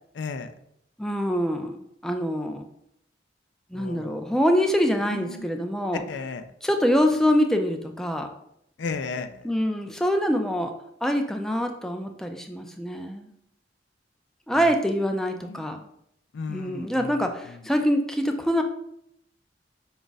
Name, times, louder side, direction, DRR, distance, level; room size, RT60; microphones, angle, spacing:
voice 1, 0.2-0.5 3.7-4.2 5.1-5.5 6.1-6.4 8.8-9.5 14.5-14.6 15.5-15.8 16.3-17.2, left 4 dB, 80° left, 9 dB, 0.4 m, -34 dB
voice 2, 1.0-2.7 3.7-6.0 6.6-8.3 9.4-10.7 11.0-13.3 14.5-15.8 16.5-18.6, equal, 5° left, 4 dB, 0.3 m, -25 dB
5.2 x 2.4 x 3.9 m, 0.74 s
head